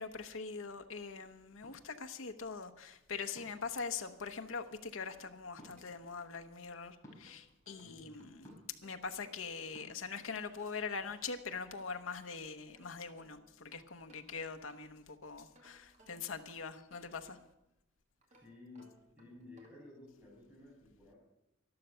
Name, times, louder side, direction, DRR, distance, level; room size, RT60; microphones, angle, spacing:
voice 1, 0.0-8.5 8.8-17.4, left 5 dB, 80° left, 1.0 m, -43 dB
sound 1, 1.6-1.8 3.3-3.7 5.5-5.7 7.0-7.2 8.4-8.8 9.7-9.9, equal, 15° left, 5.1 m, -54 dB
sound 2, 5.3-6.6 7.0-9.5 10.2-12.2 12.6-15.1 15.5-17.7 18.2-20.0, right 1 dB, 35° right, 2.3 m, -66 dB
voice 2, 7.8-8.2 18.3-21.2, left 2 dB, 10° right, 6.1 m, -55 dB
12.0 x 12.0 x 6.8 m
head